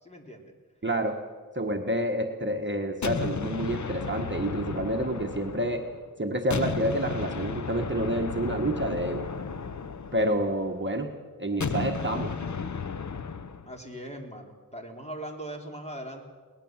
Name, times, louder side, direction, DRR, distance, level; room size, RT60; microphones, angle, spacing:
voice 1, 0.0-0.5 13.6-16.2, right 1 dB, 20° left, 2 dB, 3.5 m, -40 dB
voice 2, 0.8-1.2 1.5-5.8 6.2-9.2 10.1-11.1 11.4-12.3, right 1 dB, 30° right, 3 dB, 1.6 m, -28 dB
sound 1, 3.0-6.0 6.5-10.7 11.6-13.7, left 5 dB, 55° left, 0.9 m, -34 dB
22.5 x 19.0 x 7.5 m, 1.5 s
wide cardioid pair, 90°, 36 cm